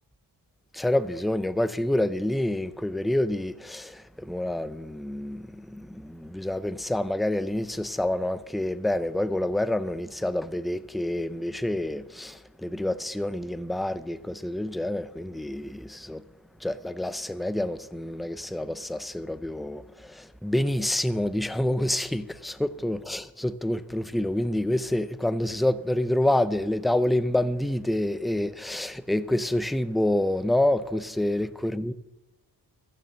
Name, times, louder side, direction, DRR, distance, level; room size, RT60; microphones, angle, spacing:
voice 1, 0.7-16.2 16.6-19.8 20.1-31.9, left 1 dB, ahead, 0.4 m, -27 dB
14.5 x 6.8 x 7.4 m
wide cardioid pair, 110°, 41 cm